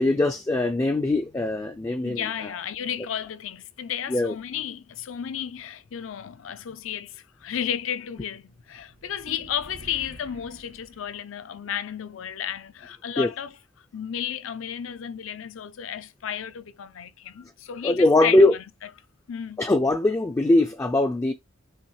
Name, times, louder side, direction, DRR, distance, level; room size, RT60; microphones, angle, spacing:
voice 1, 0.0-2.5 4.1-4.3 13.2-13.3 17.8-18.5 19.6-21.3, left 2 dB, 15° left, 0.3 m, -21 dB
voice 2, 2.0-13.6 13.9-18.5 19.3-19.6, left 9 dB, 75° left, 0.4 m, -33 dB
sound 1, 8.4-11.8, right 1 dB, 85° right, 2.5 m, -49 dB
5.6 x 2.8 x 3.2 m
head